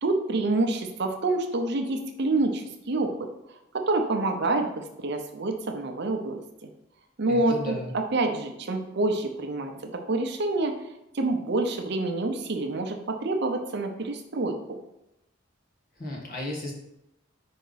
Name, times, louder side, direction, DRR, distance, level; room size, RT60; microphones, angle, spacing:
voice 1, 0.0-3.3 3.7-6.7 7.2-10.7 11.1-14.8, right 2 dB, 55° right, 5 dB, 0.7 m, -27 dB
voice 2, 7.3-7.9 16.0-16.7, left 1 dB, 45° left, -3 dB, 1.7 m, -34 dB
5.2 x 4.6 x 4.0 m, 0.86 s
head